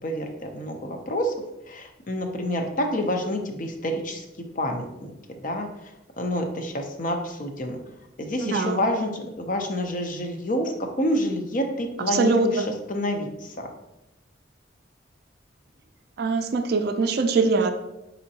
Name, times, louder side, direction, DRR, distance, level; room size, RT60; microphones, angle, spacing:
voice 1, 0.0-1.3 1.7-4.2 4.6-4.8 5.4-5.7 6.2-7.8 8.2-12.6 12.9-13.7, left 1 dB, 45° left, 4 dB, 0.5 m, -28 dB
voice 2, 8.4-8.9 12.0-12.7 16.2-17.7, right 4 dB, 55° right, 7 dB, 0.3 m, -23 dB
4.2 x 3.7 x 2.7 m, 0.90 s
head